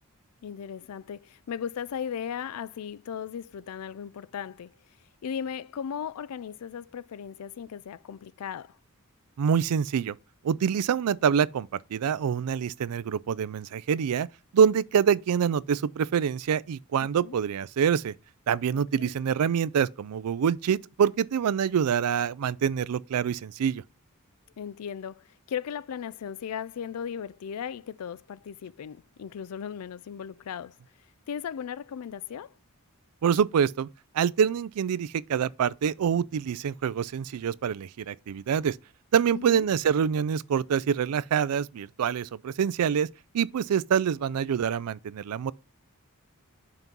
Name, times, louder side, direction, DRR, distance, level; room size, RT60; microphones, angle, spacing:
voice 1, 0.4-4.7 5.2-8.8 17.0-17.4 18.9-19.1 24.6-30.8 31.3-32.5 39.3-39.7, left 8 dB, 90° left, 0.4 m, -37 dB
voice 2, 9.4-10.1 10.4-14.3 14.5-18.1 18.5-23.8 33.2-33.9 34.1-38.8 39.1-43.1 43.3-45.5, right 7 dB, 90° right, 0.4 m, -26 dB
6.0 x 5.7 x 5.3 m
head